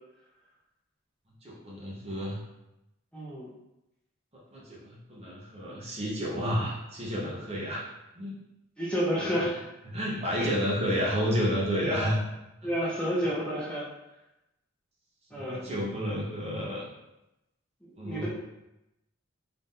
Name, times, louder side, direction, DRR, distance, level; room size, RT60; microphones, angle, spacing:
voice 1, 1.4-2.4 4.5-7.8 8.2-8.3 9.9-12.2 15.3-16.8 18.0-18.3, equal, 30° right, -5 dB, 0.9 m, -30 dB
voice 2, 3.1-3.5 8.8-9.6 10.4-10.5 11.8-12.1 12.6-13.9 15.3-15.6 17.8-18.3, equal, 5° left, -8 dB, 0.8 m, -30 dB
3.9 x 2.6 x 3.7 m, 0.90 s
head